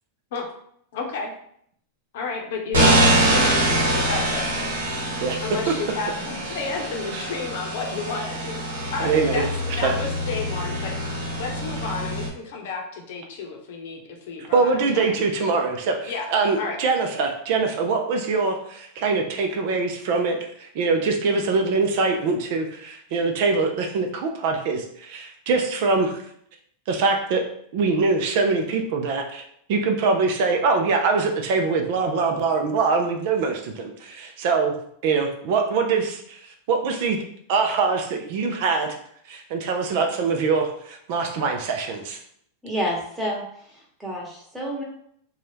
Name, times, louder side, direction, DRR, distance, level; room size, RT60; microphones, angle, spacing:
voice 1, 0.9-1.3 2.1-4.4 5.4-8.6 8.9-9.5 9.7-15.2 16.1-16.3 16.6-16.8, left 4 dB, 65° left, 2 dB, 0.7 m, -32 dB
sound 1, 2.7-12.3, right 1 dB, 90° right, 1.0 m, -24 dB
voice 2, 9.0-9.9 14.5-26.2 26.9-27.4 27.7-29.4 29.7-34.7 35.0-37.2 37.5-39.0 39.3-42.2, right 4 dB, 60° right, 3 dB, 0.5 m, -23 dB
voice 3, 42.6-44.8, equal, 5° right, -3 dB, 1.1 m, -29 dB
2.6 x 2.3 x 3.3 m, 0.68 s
hypercardioid pair, 100°, 0 cm